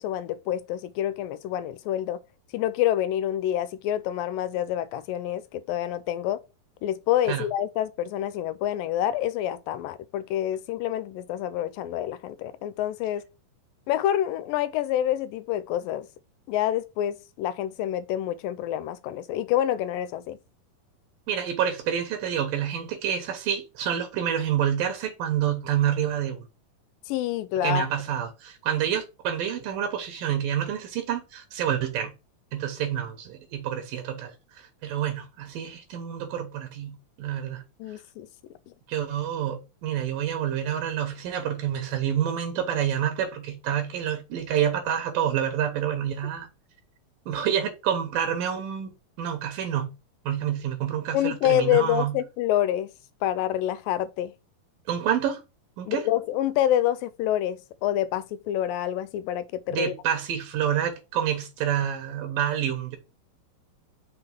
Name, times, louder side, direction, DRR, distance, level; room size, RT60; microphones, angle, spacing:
voice 1, 0.0-2.2 2.5-6.4 6.8-13.2 13.9-16.1 16.5-20.4 27.1-27.9 37.8-38.3 51.1-52.9 53.2-54.3 55.9-59.9, left 12 dB, 85° left, 2.3 m, -27 dB
voice 2, 21.3-26.5 27.6-32.1 32.5-37.6 38.9-46.5 47.3-49.9 50.3-52.1 54.9-55.4 55.8-56.0 59.7-63.0, right 9 dB, 80° right, 2.9 m, -28 dB
6.1 x 3.9 x 5.2 m
omnidirectional pair, 4.0 m